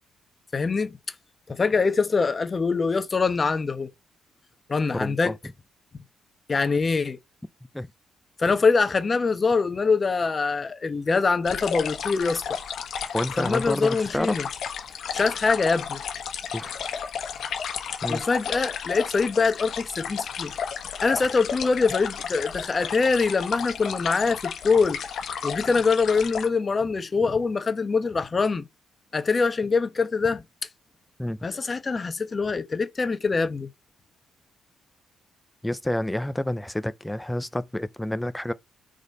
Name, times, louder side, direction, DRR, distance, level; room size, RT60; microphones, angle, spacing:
voice 1, 0.5-1.0 1.5-3.9 4.7-5.3 6.5-7.2 8.4-12.4 13.4-14.5 15.1-16.0 18.1-20.5 21.0-25.0 25.4-28.6 29.1-30.4 31.4-33.7, left 4 dB, 30° left, 1.0 m, -24 dB
voice 2, 4.9-5.3 7.7-7.9 13.1-14.4 16.5-16.8 18.0-18.2 31.2-31.4 35.6-38.5, left 1 dB, 5° left, 0.5 m, -29 dB
sound 1, 11.4-26.5, left 7 dB, 65° left, 1.3 m, -33 dB
5.1 x 4.0 x 5.2 m
cardioid pair, 90°, 0 cm